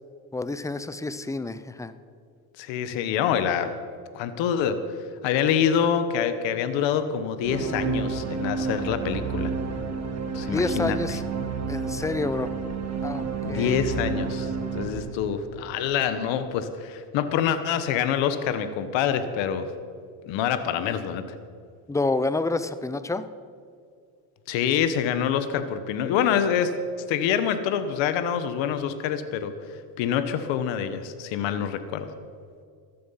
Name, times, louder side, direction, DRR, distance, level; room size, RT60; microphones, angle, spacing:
voice 1, 0.3-1.9 10.4-11.2 11.7-12.5 13.0-13.8 21.9-23.3, left 3 dB, 5° left, 13 dB, 0.6 m, -28 dB
voice 2, 2.6-3.7 4.1-4.8 5.2-9.5 10.3-11.2 13.4-19.7 20.3-21.3 24.5-26.7 27.0-29.5 30.0-32.1, left 8 dB, 75° left, 11 dB, 1.3 m, -26 dB
sound 1, 7.4-15.9, right 5 dB, 35° right, 2.3 m, -30 dB
15.0 x 12.0 x 5.7 m, 2.2 s
cardioid pair, 110°, 45 cm